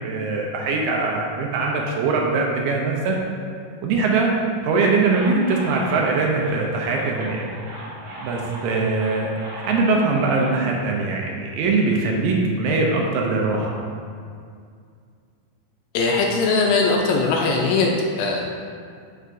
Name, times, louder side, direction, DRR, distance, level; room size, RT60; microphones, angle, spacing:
voice 1, 0.0-3.2 3.8-4.3 4.6-7.5 8.2-13.8, right 3 dB, 80° right, 0 dB, 2.2 m, -22 dB
sound 1, 5.0-10.5, right 1 dB, 60° right, 2.6 m, -38 dB
voice 2, 15.9-17.9 18.2-18.5, left 4 dB, 80° left, 0 dB, 2.1 m, -20 dB
8.0 x 5.5 x 2.5 m, 2.2 s
omnidirectional pair, 4.2 m